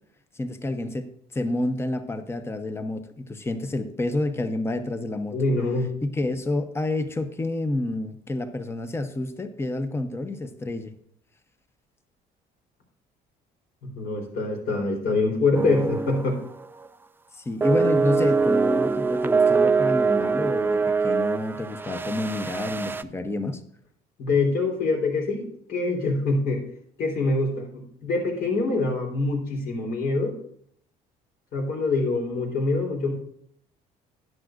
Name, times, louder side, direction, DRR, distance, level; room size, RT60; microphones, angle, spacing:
voice 1, 0.3-5.4 6.1-10.9 17.3-23.6, left 2 dB, 15° left, 9 dB, 0.9 m, -29 dB
voice 2, 5.3-5.9 13.8-16.4 24.2-26.6 27.0-30.4 31.5-33.1, left 3 dB, 65° left, 1 dB, 3.9 m, -25 dB
sound 1, 15.5-16.3 16.6-16.9 17.6-23.0, right 4 dB, 10° right, 0.4 m, -23 dB
12.5 x 10.5 x 2.6 m, 0.67 s
cardioid pair, 110°, 17 cm